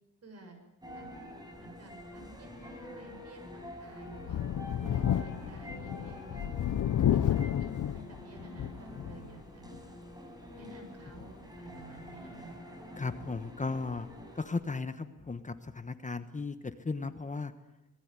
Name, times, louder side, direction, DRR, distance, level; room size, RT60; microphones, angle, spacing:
voice 1, 0.2-0.6 0.9-1.1 1.6-4.4 4.8-6.6 7.1-9.7 10.5-12.5, right 3 dB, 55° right, 5 dB, 7.1 m, -52 dB
sound 1, 0.8-14.5, equal, 15° right, 5.8 m, -47 dB
Thunder, 4.2-9.3 9.7-9.8 11.2-11.3, left 10 dB, 85° left, 0.8 m, -31 dB
voice 2, 13.0-14.1 14.3-17.5, left 4 dB, 25° left, 10 dB, 1.2 m, -36 dB
26.0 x 19.5 x 9.8 m, 0.93 s
wide cardioid pair, 150°, 30 cm